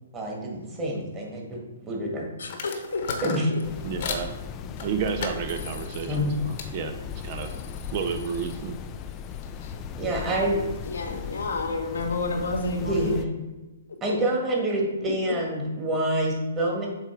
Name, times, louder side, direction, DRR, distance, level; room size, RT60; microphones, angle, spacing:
voice 1, 0.1-2.2 3.2-3.5 6.1-6.4 10.0-10.6 12.8-13.3 14.0-16.9, right 1 dB, 20° right, 1.8 m, -27 dB
voice 2, 2.4-3.6 10.8-13.1, left 3 dB, 80° left, 1.0 m, -30 dB
sound 1, 2.4-4.3 4.8-6.7 7.1-9.7, left 5 dB, 50° left, 1.0 m, -38 dB
sound 2, 3.6-13.2, left 7 dB, 25° left, 0.4 m, -37 dB
voice 3, 3.8-4.3 4.8-6.9 7.2-7.5 7.9-8.8, right 6 dB, 40° right, 0.6 m, -31 dB
7.5 x 3.1 x 4.6 m
hypercardioid pair, 140°, 0 cm